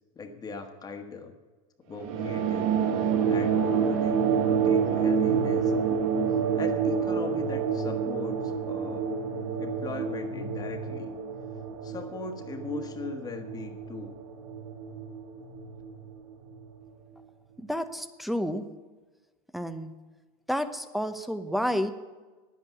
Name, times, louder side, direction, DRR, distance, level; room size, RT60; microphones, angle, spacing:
voice 1, 0.1-1.3 1.9-2.7 3.3-5.7 6.5-9.1 9.6-11.1 11.8-14.2, left 4 dB, 20° left, 5 dB, 1.5 m, -39 dB
sound 1, 2.0-16.9, right 6 dB, 70° right, 1.5 m, -28 dB
voice 2, 17.6-18.7 19.5-19.9 20.5-21.9, equal, ahead, 11 dB, 0.8 m, -30 dB
10.5 x 8.4 x 9.5 m, 1.3 s
supercardioid pair, 120°, 18 cm